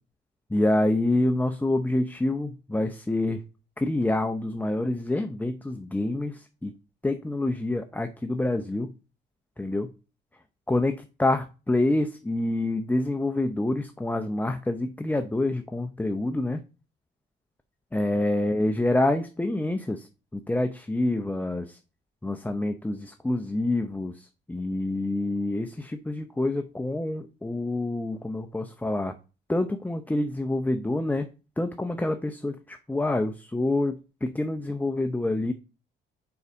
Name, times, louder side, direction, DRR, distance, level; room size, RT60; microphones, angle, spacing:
voice 1, 0.5-3.4 3.8-6.7 7.0-8.9 9.6-9.9 10.7-16.6 17.9-21.8 22.2-29.1 29.5-31.3 31.6-35.5, left 2 dB, 10° left, 7 dB, 0.7 m, -27 dB
7.0 x 4.8 x 5.1 m, 0.33 s
cardioid pair, 90°, 20 cm